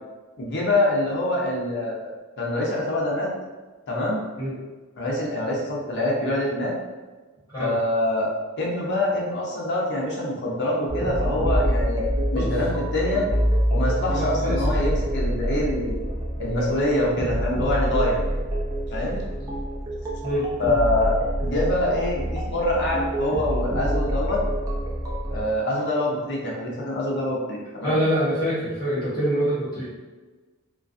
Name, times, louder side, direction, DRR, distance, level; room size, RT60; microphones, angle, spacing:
voice 1, 0.4-2.1 2.4-3.3 3.9-4.2 5.0-6.7 7.6-8.3 8.6-12.0 12.3-13.3 13.7-16.0 16.4-18.2 18.9-19.2 20.6-24.4 25.3-28.0, left 1 dB, 55° left, -3 dB, 0.6 m, -25 dB
sound 1, 10.9-25.4, equal, 15° right, 0.4 m, -26 dB
voice 2, 14.1-14.7 20.2-20.5 27.8-29.9, equal, 20° left, -14 dB, 0.8 m, -25 dB
2.3 x 2.3 x 2.5 m, 1.3 s
head